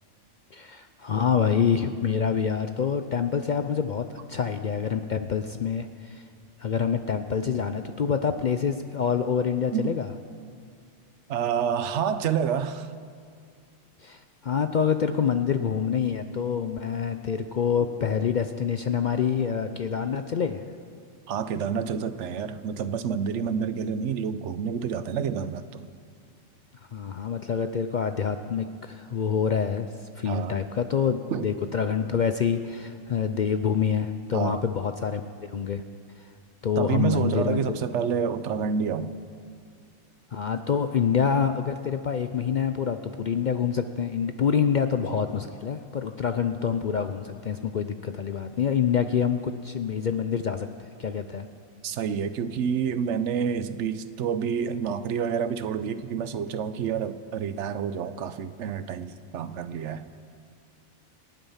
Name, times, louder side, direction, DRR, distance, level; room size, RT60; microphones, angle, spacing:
voice 1, 0.5-6.3 6.6-10.1 14.0-20.6 26.9-35.2 35.5-35.8 36.2-36.3 36.6-37.8 40.3-51.5, left 7 dB, 65° left, 8 dB, 0.4 m, -26 dB
voice 2, 11.3-12.9 21.3-25.9 30.3-30.6 31.3-31.5 34.3-34.6 36.8-39.1 51.8-60.0, right 7 dB, 65° right, 12 dB, 0.9 m, -28 dB
27.0 x 9.0 x 5.6 m, 2.2 s
omnidirectional pair, 1.4 m